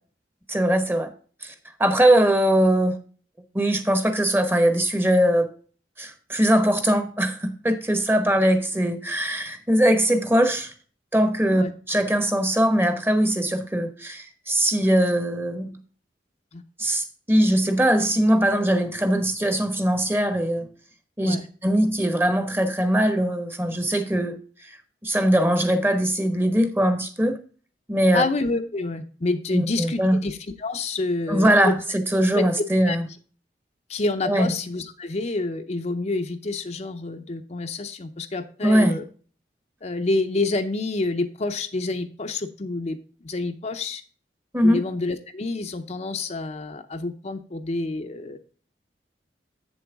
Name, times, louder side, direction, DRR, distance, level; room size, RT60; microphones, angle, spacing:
voice 1, 0.5-1.1 1.4-1.5 1.8-3.0 3.5-5.5 6.0-10.7 11.1-15.8 16.8-20.7 21.2-21.4 21.6-24.4 25.0-27.4 27.9-28.2 29.5-30.2 31.3-33.0 34.2-34.5 38.6-39.0 44.5-44.8, right 1 dB, 15° right, 9 dB, 1.0 m, -21 dB
voice 2, 28.1-31.8 32.3-33.0 33.9-39.0 39.8-44.0 44.6-48.4, left 2 dB, 40° left, 6 dB, 0.6 m, -28 dB
8.6 x 7.1 x 3.5 m, 0.41 s
head